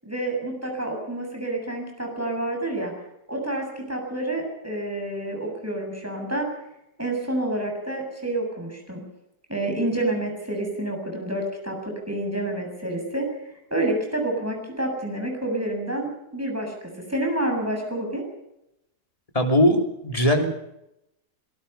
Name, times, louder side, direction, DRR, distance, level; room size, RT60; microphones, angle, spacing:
voice 1, 0.0-2.9 3.3-6.5 7.0-9.0 9.5-13.3 13.7-18.2, right 1 dB, 10° right, 1 dB, 7.3 m, -28 dB
voice 2, 19.3-20.5, equal, 20° left, 3 dB, 3.3 m, -20 dB
26.0 x 20.0 x 5.7 m, 0.87 s
omnidirectional pair, 1.7 m